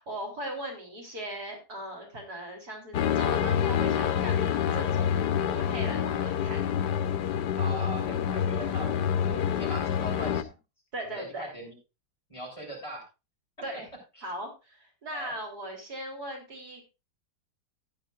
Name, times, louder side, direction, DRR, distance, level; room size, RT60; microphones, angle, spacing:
voice 1, 0.0-5.2 5.5-6.7 10.9-11.5 13.6-13.9 14.2-16.8, right 1 dB, 60° right, 1 dB, 4.2 m, -38 dB
sound 1, 2.9-10.4, left 8 dB, 80° left, 1.4 m, -27 dB
voice 2, 7.6-10.6 11.0-11.7 12.3-13.0 14.2-14.3 15.1-15.3, right 1 dB, 15° left, 0 dB, 6.6 m, -40 dB
15.0 x 11.0 x 2.5 m, 0.27 s
omnidirectional pair, 1.8 m